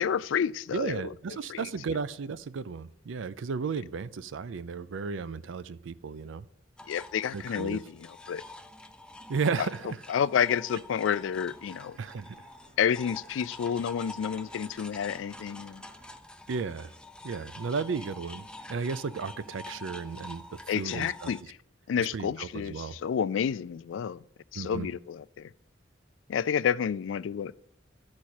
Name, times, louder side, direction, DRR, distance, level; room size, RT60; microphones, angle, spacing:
voice 1, 0.0-1.0 1.5-1.7 6.9-8.4 10.1-12.0 12.8-15.8 20.7-21.4 21.9-24.2 24.5-25.5 26.3-27.6, left 8 dB, 80° left, 0.3 m, -30 dB
voice 2, 0.7-6.5 7.3-7.8 9.3-9.9 12.0-12.4 16.5-16.9 17.2-21.3 22.0-23.0 24.5-24.9, right 5 dB, 80° right, 0.4 m, -34 dB
sound 1, 6.8-21.4, left 2 dB, 5° left, 0.4 m, -46 dB
sound 2, 11.1-16.2, right 1 dB, 35° right, 0.9 m, -59 dB
12.0 x 4.3 x 6.4 m
head